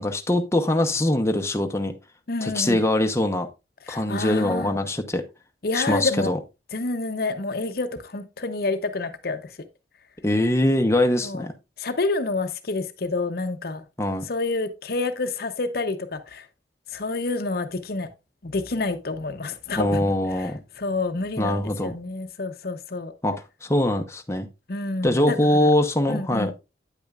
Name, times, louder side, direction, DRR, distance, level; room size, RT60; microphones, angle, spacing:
voice 1, 0.0-1.9 2.4-3.5 3.9-5.2 5.7-6.4 10.2-11.5 14.0-14.2 19.8-20.6 21.4-22.0 23.2-24.5 25.0-26.5, left 1 dB, 15° left, 0.9 m, -22 dB
voice 2, 2.3-2.8 3.9-4.7 5.6-6.3 6.7-9.5 11.2-11.5 11.8-13.8 14.3-16.5 16.9-18.1 18.4-20.5 20.8-23.1 24.7-25.7 26.1-26.5, left 3 dB, 60° left, 0.8 m, -28 dB
9.2 x 8.7 x 2.4 m
head